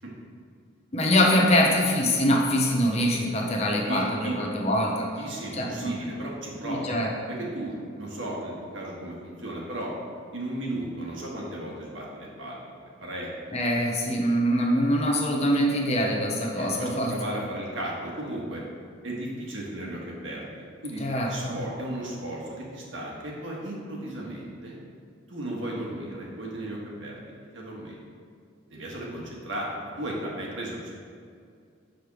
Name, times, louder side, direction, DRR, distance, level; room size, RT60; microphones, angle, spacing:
voice 1, 0.9-5.1 5.6-5.9 6.6-7.1 13.5-17.2 21.0-21.6, equal, 30° left, 0 dB, 0.7 m, -24 dB
voice 2, 3.6-4.4 5.2-6.9 7.3-9.9 10.3-13.3 16.6-18.6 19.0-24.8 25.3-27.2 27.5-28.0 28.7-30.9, right 1 dB, 70° right, -3 dB, 1.4 m, -35 dB
6.3 x 3.4 x 5.9 m, 2.3 s
head